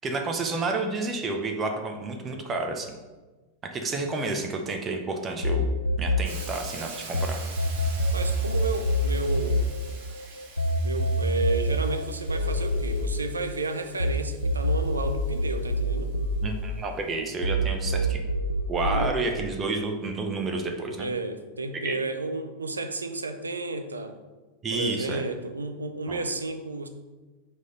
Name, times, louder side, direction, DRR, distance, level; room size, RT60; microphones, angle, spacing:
voice 1, 0.0-3.0 3.6-5.7 6.0-7.4 16.4-18.3 18.7-21.1 21.8-22.0 24.6-25.2 26.1-26.2, right 3 dB, 25° right, 4 dB, 0.8 m, -30 dB
sound 1, 5.4-7.3 7.6-14.1 14.4-17.1 17.4-19.1, left 1 dB, 85° left, 0.5 m, -26 dB
Hiss, 6.3-16.1, right 4 dB, 50° right, 1.4 m, -45 dB
voice 2, 8.1-9.6 10.8-16.1 18.9-19.2 21.0-24.2 24.7-26.9, right 3 dB, 75° right, 8 dB, 0.6 m, -32 dB
4.8 x 4.3 x 5.2 m, 1.2 s
figure-of-eight pair, 90°, 0 cm